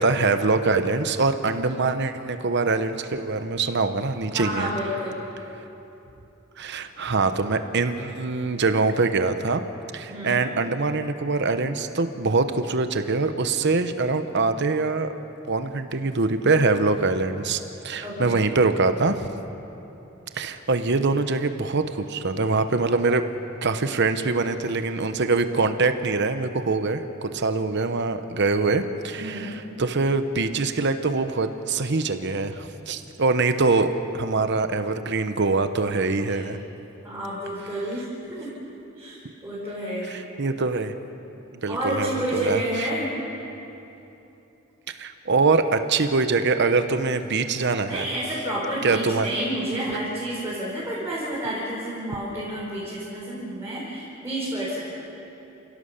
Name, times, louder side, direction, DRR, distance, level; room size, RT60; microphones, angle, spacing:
voice 1, 0.0-4.7 6.6-9.6 9.9-15.1 15.5-19.3 20.3-23.2 23.6-36.6 40.1-40.9 41.6-42.6 45.0-48.1 48.8-49.3, right 3 dB, 60° right, 9 dB, 1.0 m, -24 dB
voice 2, 4.3-5.2 10.1-10.4 18.0-18.6 29.2-29.6 36.3-36.4 37.0-38.5 39.0-40.2 41.7-43.2 47.9-54.9, right 1 dB, 15° right, -8 dB, 4.7 m, -30 dB
29.0 x 17.0 x 6.7 m, 3.0 s
head